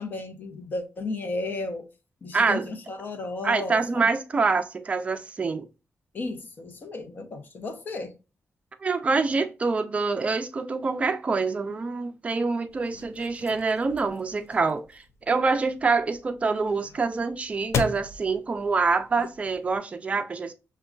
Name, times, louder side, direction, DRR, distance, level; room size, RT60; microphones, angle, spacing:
voice 1, 0.0-1.9 2.2-4.1 6.1-8.2, left 2 dB, 40° left, 0.6 m, -34 dB
voice 2, 2.3-2.7 3.4-5.7 8.8-20.5, right 4 dB, 25° right, 0.4 m, -26 dB
sound 1, 12.7-19.8, left 6 dB, 75° left, 0.4 m, -38 dB
6.0 x 2.2 x 2.3 m
wide cardioid pair, 160°, 5 cm